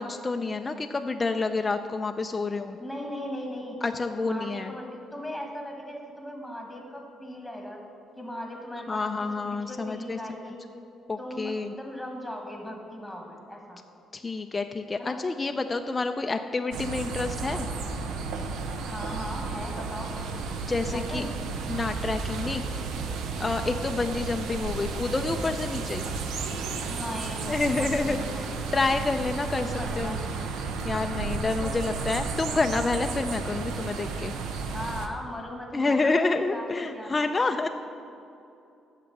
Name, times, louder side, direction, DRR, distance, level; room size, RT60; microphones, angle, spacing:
voice 1, 0.0-2.8 3.8-4.7 8.9-10.2 11.1-11.7 14.1-17.7 20.7-21.2 21.7-22.8 23.4-26.0 27.5-28.5 28.7-30.2 30.8-34.3 35.7-37.7, left 3 dB, 25° left, 5 dB, 0.4 m, -28 dB
voice 2, 2.8-3.8 4.2-7.8 8.2-10.6 11.2-13.8 15.0-15.2 18.8-20.5 20.9-21.4 26.9-28.5 29.6-30.2 31.6-32.0 34.7-37.3, left 1 dB, ahead, 1 dB, 1.6 m, -38 dB
sound 1, 16.7-35.1, right 4 dB, 80° right, 0.8 m, -33 dB
sound 2, 22.3-22.4 23.6-23.7 24.9-25.1 26.2-26.4 27.5-27.6, right 7 dB, 65° right, 1.7 m, -52 dB
8.5 x 6.6 x 7.2 m, 2.7 s
cardioid pair, 110°, 0 cm